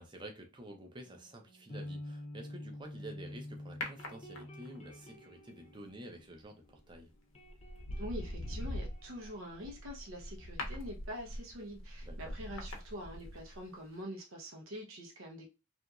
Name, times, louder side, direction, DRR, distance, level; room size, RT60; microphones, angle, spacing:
voice 1, 0.0-7.1 12.0-12.4, right 1 dB, 25° right, 0.5 m, -50 dB
sound 1, 1.1-6.9 7.1-10.6, left 1 dB, 30° left, 0.5 m, -49 dB
sound 2, 3.8-4.8 6.7-7.0 7.5-13.7 13.9-14.0, left 1 dB, 75° left, 0.7 m, -42 dB
voice 2, 7.9-15.5, equal, 80° right, 0.7 m, -45 dB
2.9 x 2.5 x 2.3 m
head